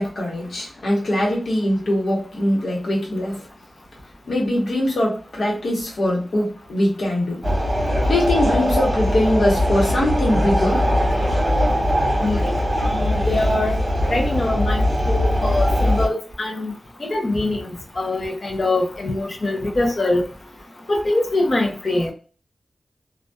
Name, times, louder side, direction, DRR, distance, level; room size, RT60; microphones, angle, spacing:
voice 1, 0.0-3.5 4.3-7.4 8.1-10.8 12.5-12.9, left 1 dB, 75° left, -2 dB, 1.0 m, -22 dB
sound 1, 7.4-16.1, equal, 20° right, 1.3 m, -20 dB
voice 2, 12.2-13.8 14.1-16.7 17.0-20.2 20.9-22.1, left 2 dB, 40° left, 2 dB, 0.6 m, -23 dB
2.6 x 2.2 x 2.2 m, 0.39 s
wide cardioid pair, 120°, 0 cm